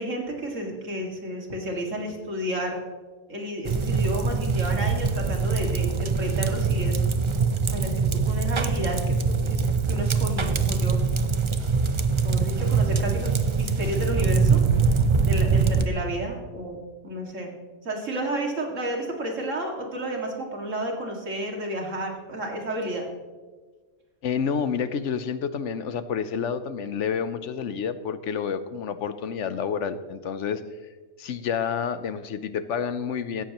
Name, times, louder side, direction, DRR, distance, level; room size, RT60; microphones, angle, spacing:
voice 1, 0.0-2.8 3.3-7.0 7.6-9.6 9.9-11.0 12.2-14.6 15.3-17.6 17.8-23.1, right 1 dB, 70° right, 1 dB, 2.6 m, -31 dB
sound 1, 3.6-15.9, right 5 dB, 35° right, 0.5 m, -23 dB
voice 2, 24.2-30.6 31.2-33.4, left 7 dB, 70° left, 12 dB, 1.0 m, -29 dB
17.0 x 14.5 x 3.0 m, 1.4 s
omnidirectional pair, 1.3 m